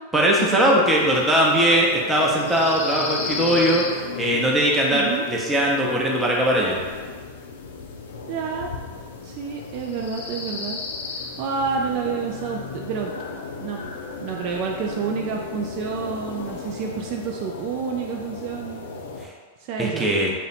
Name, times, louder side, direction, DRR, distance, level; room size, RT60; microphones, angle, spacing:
voice 1, 0.1-3.8 4.1-6.8 19.8-20.3, right 1 dB, 10° right, -3 dB, 0.7 m, -20 dB
sound 1, 0.8-19.3, left 4 dB, 75° left, 0.4 m, -35 dB
voice 2, 4.9-5.2 8.3-8.7 9.2-10.8 11.1-13.1 13.6-13.9 14.2-18.8 19.6-20.1, right 5 dB, 50° right, 0 dB, 0.3 m, -29 dB
2.7 x 2.1 x 4.0 m, 1.5 s
hypercardioid pair, 115°, 0 cm